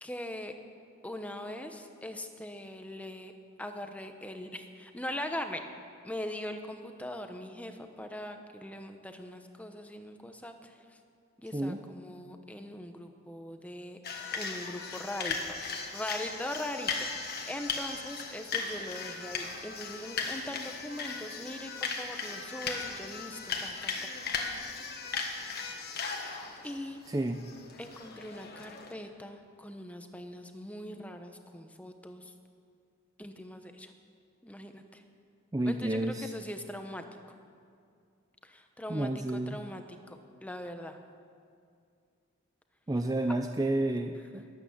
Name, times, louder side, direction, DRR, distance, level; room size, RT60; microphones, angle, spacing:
voice 1, 0.0-0.5 1.0-3.3 3.6-5.6 6.0-11.0 11.4-14.0 14.3-15.6 15.9-24.4 26.6-27.0 27.8-32.3 33.2-33.9 34.4-35.0 35.6-37.0 38.4-39.8 40.1-41.0, left 1 dB, 5° left, 6 dB, 0.9 m, -41 dB
sound 1, 14.0-28.9, left 5 dB, 50° left, 1.5 m, -37 dB
voice 2, 27.1-27.4 35.5-36.3 38.9-39.6 42.9-44.5, right 1 dB, 15° right, 6 dB, 0.4 m, -30 dB
21.5 x 8.9 x 7.3 m, 2.3 s
head